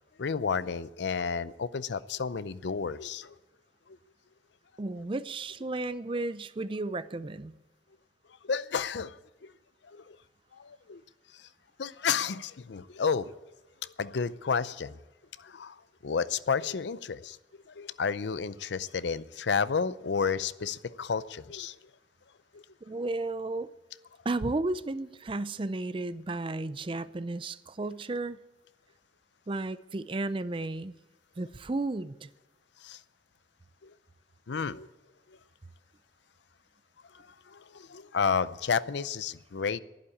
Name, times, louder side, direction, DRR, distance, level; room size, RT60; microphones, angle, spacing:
voice 1, 0.2-3.4 3.9-4.0 8.4-9.5 9.8-10.2 10.5-11.0 11.3-11.5 11.8-13.4 13.8-15.0 15.4-17.4 17.7-21.8 22.5-22.6 32.8-33.0 33.8-33.9 34.5-34.9 35.3-35.4 37.1-39.8, left 6 dB, 70° left, 0.5 m, -31 dB
voice 2, 4.8-7.5 22.8-23.7 24.2-28.4 29.5-30.9 31.4-32.3, right 2 dB, 30° right, 0.5 m, -33 dB
11.5 x 11.5 x 8.6 m
head